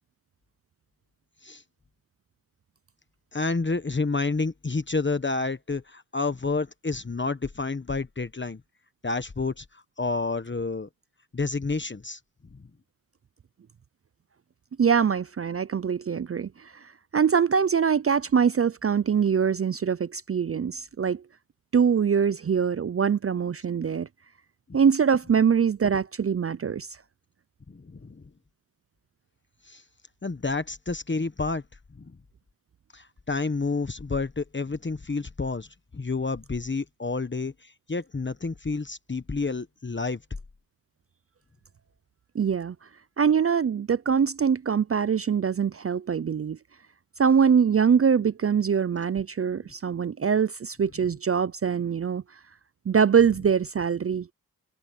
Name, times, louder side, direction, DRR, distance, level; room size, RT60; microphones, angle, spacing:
voice 1, 3.3-8.6 9.0-10.9 11.3-12.2 12.5-12.6 27.7-28.2 29.6-29.8 30.2-31.6 31.9-32.2 32.9-35.7 35.9-40.2, left 3 dB, 30° left, 1.2 m, -29 dB
voice 2, 14.8-21.2 21.7-24.1 24.7-26.9 42.3-42.8 43.2-46.6 47.2-52.2 52.9-54.3, right 7 dB, 40° right, 0.5 m, -23 dB
cardioid pair, 60°, 36 cm